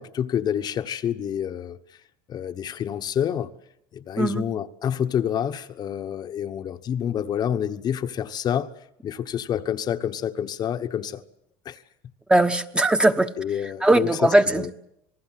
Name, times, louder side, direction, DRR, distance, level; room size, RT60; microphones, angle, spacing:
voice 1, 0.0-1.8 2.3-3.5 3.9-8.7 9.0-11.2 11.6-11.8 13.4-14.2 14.6-14.7, left 9 dB, 40° left, 1.1 m, -28 dB
voice 2, 12.3-13.3 13.8-14.7, right 2 dB, 10° right, 1.2 m, -19 dB
27.5 x 20.0 x 7.5 m
cardioid pair, 135°, 11 cm